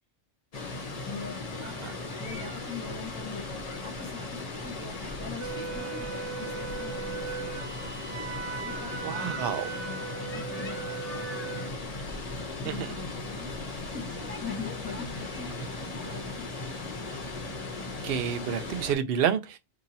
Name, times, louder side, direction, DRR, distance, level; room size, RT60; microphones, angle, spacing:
Water, 0.5-19.0, left 2 dB, 35° left, 0.7 m, -37 dB
voice 1, 1.0-1.8 2.2-3.4 3.8-7.5 8.6-11.7 12.6-16.5, left 5 dB, 20° left, 1.1 m, -43 dB
Wind instrument woodwind instrument, 5.4-11.7, right 5 dB, 90° right, 1.0 m, -38 dB
voice 2, 9.0-9.7 12.6-12.7 18.0-19.6, right 8 dB, 60° right, 0.7 m, -29 dB
2.8 x 2.8 x 3.9 m
omnidirectional pair, 1.2 m